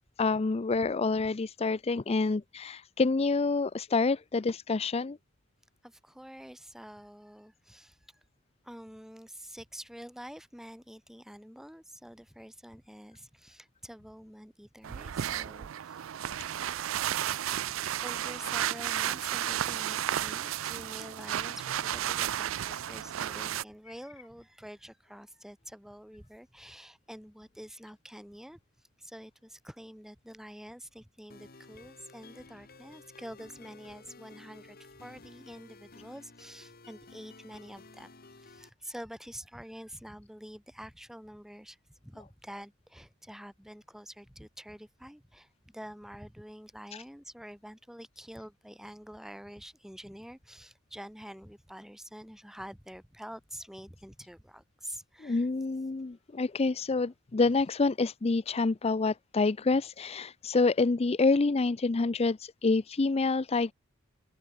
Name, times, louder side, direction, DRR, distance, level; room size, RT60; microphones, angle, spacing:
voice 1, 0.2-5.2 46.9-47.0 55.2-63.7, left 3 dB, 30° left, 0.5 m, -27 dB
voice 2, 5.8-8.0 8.6-16.0 17.6-28.6 29.0-38.1 38.4-41.8 42.0-55.5, equal, ahead, 5.8 m, -47 dB
sound 1, 14.8-23.6, right 11 dB, 80° right, 0.4 m, -33 dB
sound 2, 31.3-38.7, left 3 dB, 50° left, 2.7 m, -53 dB
head